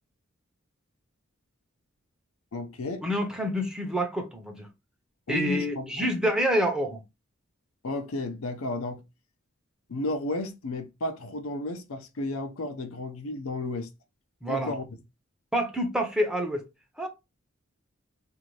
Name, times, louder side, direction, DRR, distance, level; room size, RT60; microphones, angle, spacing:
voice 1, 2.5-3.1 5.3-6.1 7.8-9.0 9.9-13.9 14.5-14.8, left 2 dB, 80° left, 0.6 m, -33 dB
voice 2, 3.0-4.7 5.3-7.0 14.4-14.7 15.5-16.7 17.0-17.1, equal, 5° right, 0.6 m, -27 dB
2.6 x 2.6 x 3.1 m
head